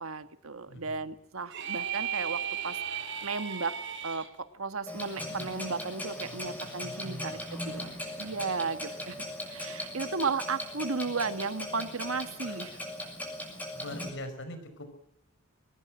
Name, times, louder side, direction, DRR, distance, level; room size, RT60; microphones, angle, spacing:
voice 1, 0.0-3.8 4.0-7.9 8.2-9.2 9.5-12.8, right 4 dB, 75° right, 11 dB, 1.5 m, -34 dB
sound 1, 1.5-4.3, right 8 dB, 60° right, 2.8 m, -35 dB
Clock, 4.9-14.1, left 1 dB, 10° left, 6.6 m, -39 dB
voice 2, 6.8-7.5 8.3-8.5 12.4-12.6 13.7-14.9, left 1 dB, 60° left, 10 dB, 5.5 m, -43 dB
23.0 x 20.0 x 8.9 m, 0.80 s
head